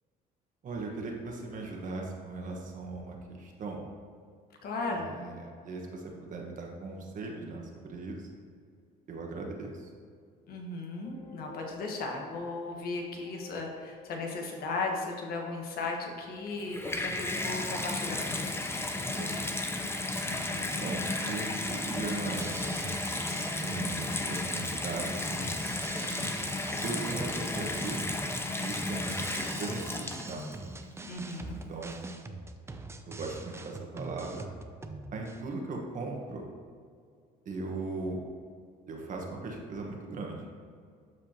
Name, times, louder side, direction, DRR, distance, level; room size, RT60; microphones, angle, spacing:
voice 1, 0.6-3.8 4.9-8.3 9.1-9.9 17.0-17.4 18.9-19.3 20.8-22.5 23.6-25.5 26.8-28.0 28.6-30.4 31.7-32.0 33.1-34.4 35.1-36.4 37.4-38.2 38.9-40.5, right 3 dB, 50° right, 0 dB, 1.5 m, -38 dB
voice 2, 4.6-5.2 10.5-18.6 31.1-31.6, left 3 dB, 65° left, 1 dB, 1.5 m, -36 dB
sound 1, 11.0-16.9, left 4 dB, 45° left, 1.5 m, -50 dB
Water tap faucet / Bathtub (filling or washing), 16.5-30.5 31.3-31.4, left 2 dB, 15° left, 0.8 m, -33 dB
sound 2, 22.3-35.4, right 2 dB, 15° right, 0.5 m, -43 dB
12.5 x 4.9 x 3.0 m, 2.2 s
cardioid pair, 110°, 17 cm